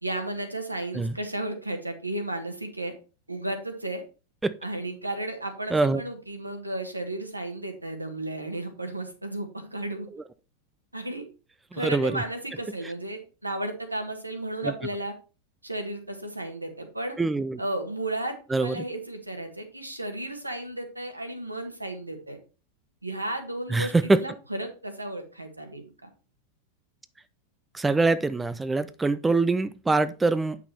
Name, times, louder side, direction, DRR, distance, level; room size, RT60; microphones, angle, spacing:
voice 1, 0.0-2.9 3.3-4.0 4.6-10.1 10.9-11.2 11.7-15.1 15.6-17.2 17.6-22.4 23.0-26.1, right 1 dB, 85° right, 5 dB, 1.7 m, -34 dB
voice 2, 5.7-6.0 11.7-12.2 14.6-14.7 17.2-17.6 18.5-18.7 23.7-24.2 27.7-30.6, right 3 dB, 10° right, 13 dB, 0.4 m, -24 dB
8.7 x 5.9 x 4.3 m, 0.34 s
figure-of-eight pair, 90°, 0 cm